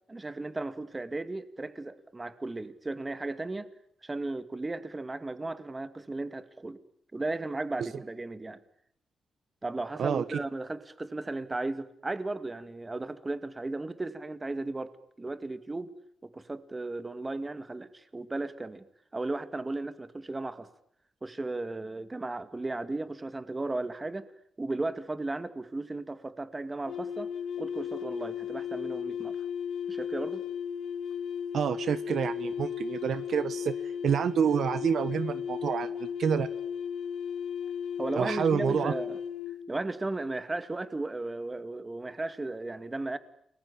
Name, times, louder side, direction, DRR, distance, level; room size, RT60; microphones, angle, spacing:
voice 1, 0.1-3.7 4.0-6.8 7.1-8.6 9.6-15.9 16.2-18.8 19.1-20.7 21.2-24.3 24.6-27.3 27.6-29.4 29.9-30.4 38.0-39.2 39.7-43.2, right 2 dB, 20° right, 2.2 m, -35 dB
sound 1, 26.9-39.6, left 8 dB, 80° left, 2.3 m, -35 dB
voice 2, 31.5-36.5 38.2-38.9, right 7 dB, 65° right, 1.3 m, -28 dB
30.0 x 21.5 x 8.7 m
cardioid pair, 110°, 0 cm